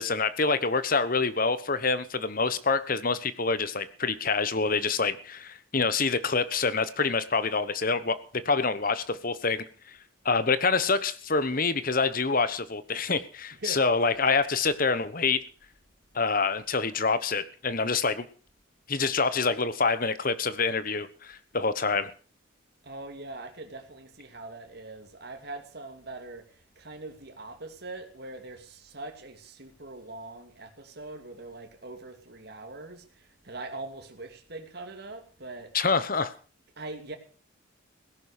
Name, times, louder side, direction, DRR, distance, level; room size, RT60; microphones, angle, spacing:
voice 1, 0.0-8.2 8.4-10.0 10.2-15.5 16.1-18.3 18.9-22.1 35.7-36.3, left 4 dB, 40° left, 1.1 m, -26 dB
voice 2, 22.8-35.7 36.8-37.1, right 2 dB, 50° right, 2.6 m, -42 dB
17.0 x 11.0 x 6.6 m
head